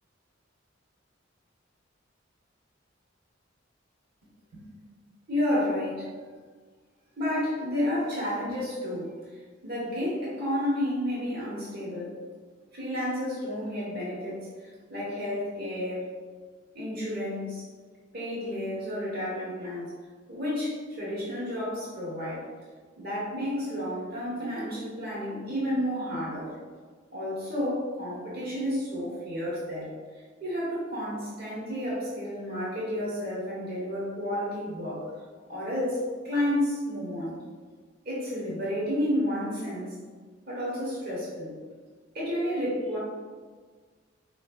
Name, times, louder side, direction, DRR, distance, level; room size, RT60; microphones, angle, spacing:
voice 1, 5.3-6.1 7.2-12.2 12.7-14.5 14.9-16.2 16.7-17.6 18.1-19.9 20.3-22.5 23.0-26.5 27.1-35.0 35.5-37.4 38.0-40.0 40.5-41.5 42.1-43.0, left 1 dB, 50° right, -7 dB, 1.2 m, -31 dB
4.5 x 3.2 x 2.4 m, 1.5 s
head